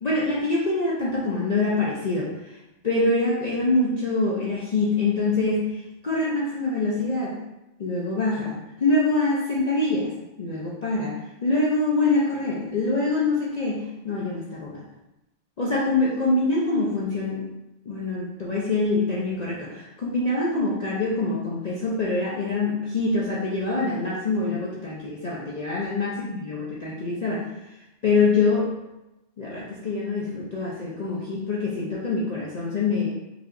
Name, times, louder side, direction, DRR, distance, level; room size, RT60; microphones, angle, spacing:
voice 1, 0.0-2.6 2.8-7.3 7.8-10.1 10.4-11.1 11.4-14.8 15.6-17.5 17.9-27.4 28.0-28.7 29.4-33.1, left 3 dB, 45° left, -5 dB, 0.5 m, -25 dB
4.9 x 2.9 x 2.5 m, 0.96 s
omnidirectional pair, 1.3 m